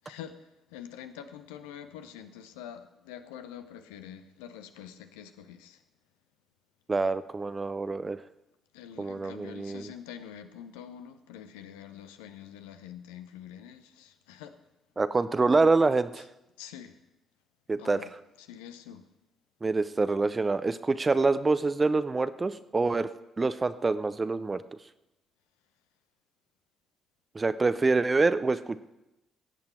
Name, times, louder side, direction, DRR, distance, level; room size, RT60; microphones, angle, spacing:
voice 1, 0.0-5.8 8.7-14.6 16.2-16.3 16.6-17.0 17.8-18.1 18.4-19.1, left 9 dB, 70° left, 9 dB, 0.7 m, -46 dB
voice 2, 6.9-8.2 9.0-9.9 15.0-16.2 17.7-18.0 19.6-24.6 27.3-28.8, right 3 dB, 25° right, 14 dB, 0.6 m, -26 dB
17.5 x 8.7 x 4.4 m, 0.96 s
figure-of-eight pair, 45°, 0 cm